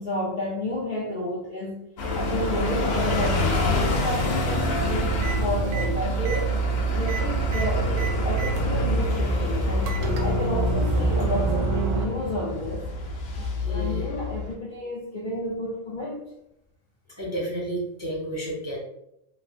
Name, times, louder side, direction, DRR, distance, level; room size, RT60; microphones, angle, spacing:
voice 1, 0.0-1.9 2.1-6.5 6.9-10.0 10.2-12.9 13.7-16.3, left 1 dB, 55° left, -4 dB, 0.6 m, -31 dB
sound 1, 2.0-14.5, left 2 dB, 85° left, 1.1 m, -27 dB
sound 2, 4.7-12.1, right 5 dB, 75° right, 0.9 m, -27 dB
voice 2, 13.4-14.1 17.2-18.8, right 1 dB, 15° right, -5 dB, 0.5 m, -32 dB
3.0 x 2.6 x 2.7 m, 0.81 s
omnidirectional pair, 1.4 m